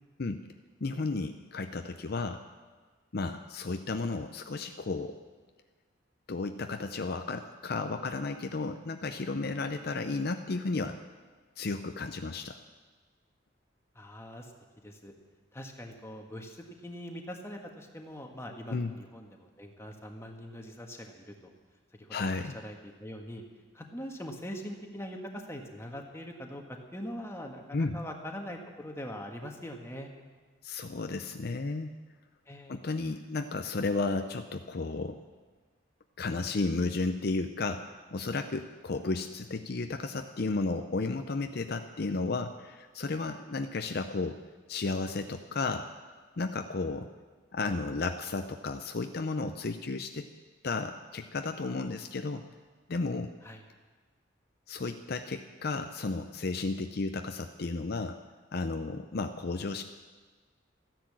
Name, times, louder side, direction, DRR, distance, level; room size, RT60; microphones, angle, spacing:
voice 1, 0.8-2.4 3.1-5.2 6.3-11.0 11.6-12.6 18.7-18.9 22.1-22.6 27.7-28.0 30.6-32.0 32.7-35.2 36.2-44.4 44.7-45.9 46.4-47.1 47.5-50.3 50.6-52.4 52.9-53.3 54.7-58.2 58.5-59.8, left 3 dB, 55° left, 7 dB, 0.6 m, -33 dB
voice 2, 13.9-14.5 14.8-15.1 15.5-16.6 16.8-21.5 22.0-23.4 23.7-30.1 32.5-32.8 53.4-53.6, equal, 15° left, 2 dB, 1.5 m, -42 dB
14.0 x 10.0 x 7.5 m, 1.4 s
head